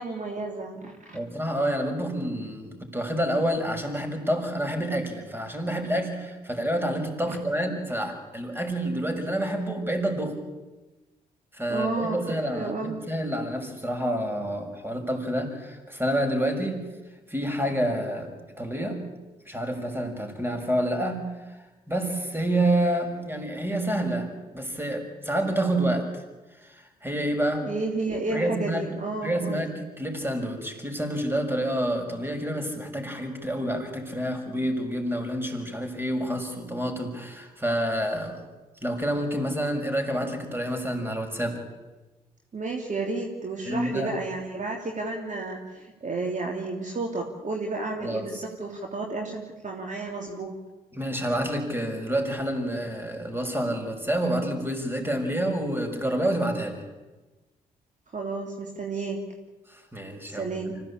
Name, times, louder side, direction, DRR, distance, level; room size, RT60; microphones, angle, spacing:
voice 1, 0.0-1.2 7.3-7.4 11.7-12.2 12.5-13.0 27.6-29.6 42.5-50.5 58.1-59.2 60.3-60.8, right 3 dB, 40° right, 1 dB, 3.2 m, -32 dB
voice 2, 1.1-10.4 11.5-16.9 17.3-19.0 19.5-21.3 21.9-26.2 26.6-27.7 28.3-28.9 29.2-38.4 38.8-41.6 43.7-44.1 48.0-48.3 50.9-56.8 59.7-60.8, right 1 dB, 10° right, 5 dB, 6.3 m, -28 dB
25.5 x 16.5 x 8.7 m, 1.2 s
hypercardioid pair, 45°, 19 cm